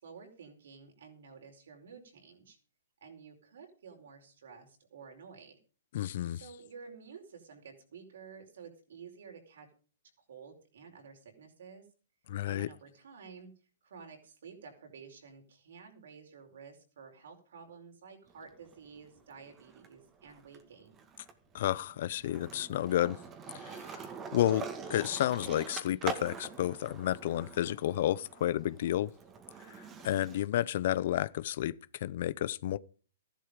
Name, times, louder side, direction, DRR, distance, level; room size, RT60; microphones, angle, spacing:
voice 1, 0.0-2.6 3.0-5.6 6.3-9.7 10.2-11.9 12.5-13.5 13.8-21.0, right 6 dB, 70° right, 4.8 m, -52 dB
voice 2, 5.9-6.4 12.3-12.7 21.5-23.2 23.5-29.1 30.0-31.7 32.0-32.8, left 12 dB, 55° left, 0.7 m, -31 dB
Skateboard, 18.3-19.9 20.2-30.5, right 5 dB, 20° right, 2.0 m, -45 dB
14.0 x 11.5 x 5.1 m
hypercardioid pair, 130°, 0 cm